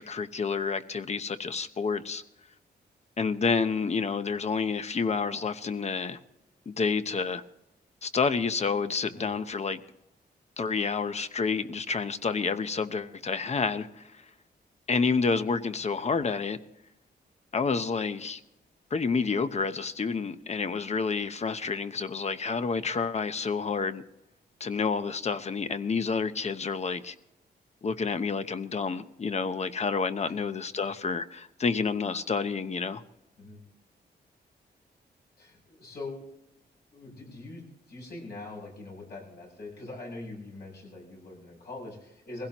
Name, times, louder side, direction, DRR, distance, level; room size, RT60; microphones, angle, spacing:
voice 1, 0.0-2.2 3.2-6.2 6.7-7.4 8.0-9.8 10.6-14.2 14.9-16.6 17.5-18.4 18.9-24.0 24.6-27.1 27.8-33.0, left 5 dB, 40° left, 11 dB, 0.9 m, -29 dB
voice 2, 9.1-9.5 33.4-33.6 35.4-36.2 36.9-42.5, left 2 dB, 65° left, -2 dB, 7.4 m, -43 dB
22.0 x 16.0 x 3.0 m, 0.86 s
wide cardioid pair, 115°, 18 cm